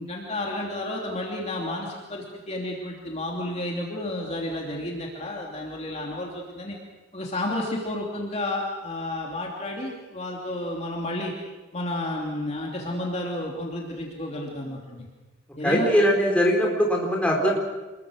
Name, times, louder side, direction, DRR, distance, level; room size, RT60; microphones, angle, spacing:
voice 1, 0.0-6.8 7.1-11.3 11.7-15.1 15.6-15.9, left 1 dB, 30° left, -1 dB, 3.0 m, -31 dB
voice 2, 15.6-17.6, equal, 5° left, -1 dB, 4.5 m, -21 dB
27.5 x 21.5 x 6.4 m, 1.2 s
head